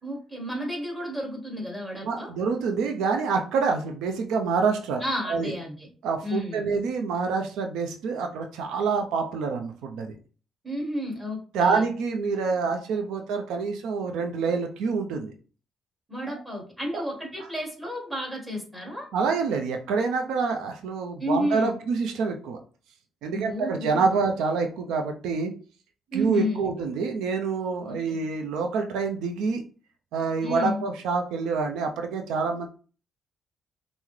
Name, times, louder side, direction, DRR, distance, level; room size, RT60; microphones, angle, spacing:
voice 1, 0.0-2.3 5.0-5.9 6.2-6.6 10.6-11.8 16.1-19.1 21.2-21.8 23.3-24.2 26.1-26.7 27.9-28.2 30.4-30.8, left 1 dB, 5° right, 0 dB, 1.7 m, -31 dB
voice 2, 2.0-5.0 5.3-5.5 6.0-10.1 11.5-15.3 16.9-17.0 19.1-22.6 23.2-25.5 26.1-29.6 30.1-32.7, right 5 dB, 90° right, 4 dB, 0.5 m, -27 dB
5.6 x 2.0 x 3.1 m, 0.38 s
cardioid pair, 90°, 0 cm